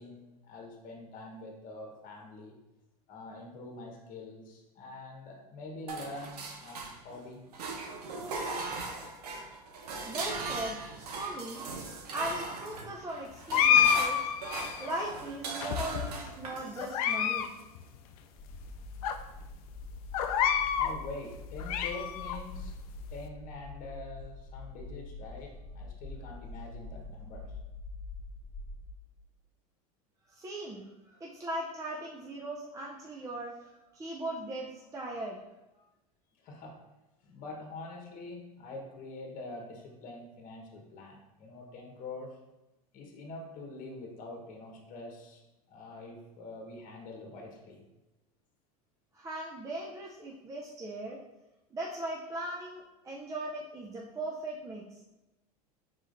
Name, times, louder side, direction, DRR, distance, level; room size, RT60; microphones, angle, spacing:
voice 1, 0.0-2.6 3.1-7.4 20.8-22.7 23.1-27.6 36.4-36.8 37.2-42.4 42.9-45.4 45.7-47.8, left 2 dB, 45° left, 1 dB, 1.2 m, -45 dB
sound 1, 5.9-7.2 7.5-17.0, right 3 dB, 85° right, 0.8 m, -39 dB
voice 2, 10.0-10.8 11.1-11.7 11.9-17.5 30.3-35.4 49.1-51.2 51.7-54.8, right 1 dB, 15° right, -2 dB, 0.5 m, -39 dB
sound 2, 13.5-14.9 15.6-16.3 16.8-17.5 17.8-17.9 18.5-18.6 19.0-19.1 20.1-20.9 21.4-22.4, left 9 dB, 70° left, 0.4 m, -27 dB
sound 3, 18.4-28.9, left 2 dB, ahead, 1.4 m, -44 dB
4.9 x 3.9 x 2.6 m, 0.99 s
hypercardioid pair, 100°, 20 cm